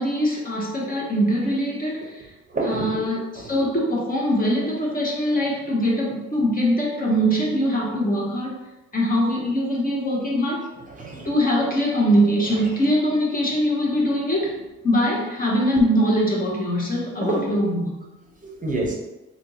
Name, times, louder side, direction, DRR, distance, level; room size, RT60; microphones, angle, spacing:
voice 1, 0.0-2.3 2.6-8.6 8.9-10.7 11.2-14.6 14.8-18.0, equal, 30° left, -3 dB, 0.9 m, -22 dB
voice 2, 2.5-3.1 3.3-3.7 10.9-11.3 12.5-12.6 17.2-17.5 18.4-18.9, right 2 dB, 25° right, -1 dB, 0.7 m, -28 dB
3.3 x 2.8 x 2.7 m, 1.0 s
cardioid pair, 90°, 30 cm